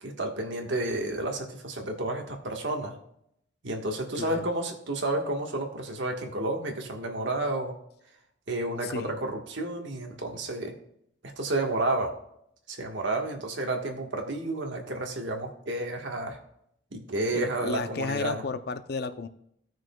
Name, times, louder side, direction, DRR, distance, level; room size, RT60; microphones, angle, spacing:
voice 1, 0.0-2.9 3.6-7.7 8.5-10.7 11.4-12.1 12.7-16.4 16.9-18.4, right 2 dB, 70° right, 2 dB, 1.4 m, -31 dB
voice 2, 4.2-4.5 8.8-9.2 17.3-19.3, left 4 dB, 55° left, 10 dB, 0.5 m, -33 dB
16.5 x 6.2 x 2.3 m, 0.73 s
head